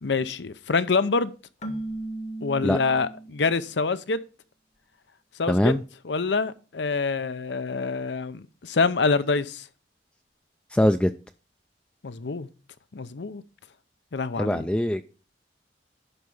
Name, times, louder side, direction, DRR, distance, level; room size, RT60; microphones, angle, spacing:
voice 1, 0.0-1.3 2.4-4.2 5.4-5.7 6.0-9.6 12.0-12.5 12.9-13.4 14.1-14.7, left 4 dB, 75° left, 0.7 m, -26 dB
Keyboard (musical), 1.6-3.6, right 1 dB, 40° left, 1.0 m, -36 dB
voice 2, 5.5-5.8 10.7-11.1 14.4-15.0, left 1 dB, 5° left, 0.3 m, -22 dB
11.5 x 4.6 x 5.5 m
head